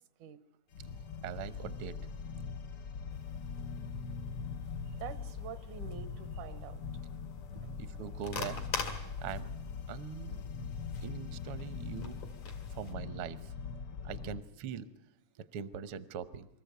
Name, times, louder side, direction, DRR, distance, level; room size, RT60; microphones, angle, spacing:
sound 1, 0.7-14.4, left 5 dB, 65° left, 1.4 m, -42 dB
voice 1, 1.2-2.0 7.8-8.6 9.2-9.5 9.9-10.4 11.0-12.2 12.7-13.5 14.0-14.9 15.5-16.5, right 8 dB, 70° right, 13 dB, 1.3 m, -41 dB
sound 2, 3.1-12.9, left 5 dB, 90° left, 3.7 m, -46 dB
voice 2, 5.0-6.8 7.5-7.7 10.9-11.1 14.0-14.1, right 9 dB, 85° right, 11 dB, 2.6 m, -47 dB
25.5 x 14.0 x 8.1 m, 0.90 s
omnidirectional pair, 3.4 m